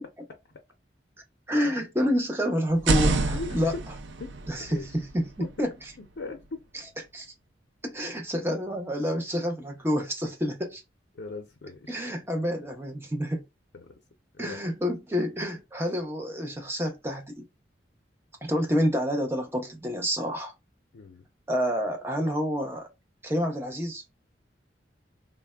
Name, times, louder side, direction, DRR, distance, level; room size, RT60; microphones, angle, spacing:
voice 1, 1.5-3.7 4.5-5.7 7.1-7.3 7.8-10.8 11.9-13.4 14.4-17.4 18.4-20.5 21.5-22.9 23.2-24.0, equal, 15° right, 0.6 m, -28 dB
sound 1, 2.7-6.5, right 3 dB, 90° right, 0.4 m, -30 dB
voice 2, 3.3-3.7 4.2-4.3 4.7-4.9 5.4-5.5 6.0-6.6 11.1-11.9 13.7-14.0 14.4-14.6 20.9-21.2, left 3 dB, 85° left, 0.6 m, -39 dB
3.3 x 2.1 x 2.2 m
head